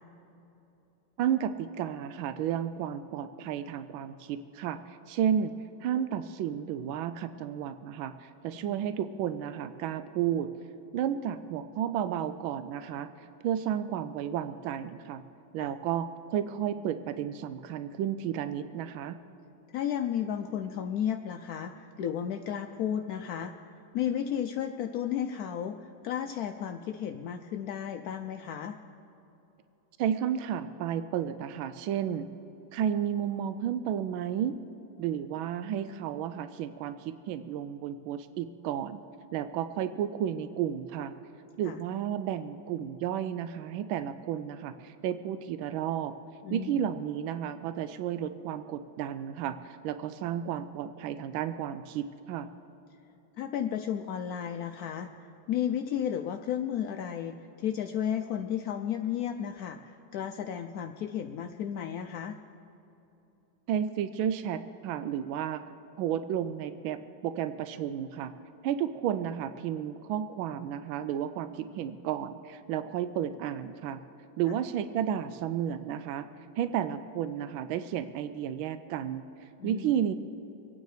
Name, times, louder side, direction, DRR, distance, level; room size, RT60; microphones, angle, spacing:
voice 1, 1.2-5.5 5.8-10.5 10.9-15.2 15.5-19.2 30.0-32.3 32.7-34.6 35.0-39.0 39.3-41.1 41.6-46.1 46.5-52.5 63.7-65.6 66.0-68.3 68.6-74.0 74.4-76.3 76.6-80.1, right 9 dB, 90° right, 12 dB, 1.4 m, -32 dB
voice 2, 19.7-28.8 41.6-41.8 46.4-46.9 53.4-55.1 55.5-62.4 79.6-79.9, left 9 dB, 75° left, 6 dB, 0.8 m, -33 dB
25.0 x 9.3 x 4.8 m, 3.0 s
omnidirectional pair, 2.1 m